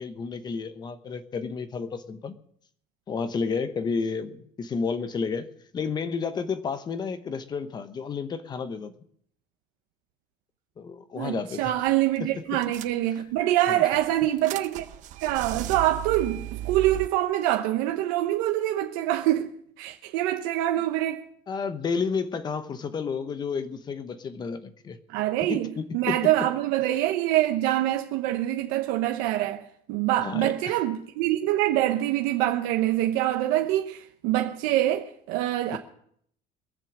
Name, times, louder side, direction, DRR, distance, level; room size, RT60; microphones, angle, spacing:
voice 1, 0.0-2.4 3.1-5.5 5.7-8.9 10.8-11.7 12.2-12.3 13.7-13.9 21.5-25.0 25.5-26.2 30.2-30.5 35.7-35.8, left 5 dB, 25° left, 0.9 m, -31 dB
voice 2, 11.2-14.8 15.2-19.5 19.8-21.2 25.1-29.6 29.9-35.8, right 14 dB, 90° right, 1.0 m, -25 dB
sound 1, 11.7-11.9 12.2-12.3 12.6-13.4 13.9-17.1, right 14 dB, 45° right, 0.7 m, -36 dB
22.5 x 7.6 x 6.2 m
cardioid pair, 165°, 18 cm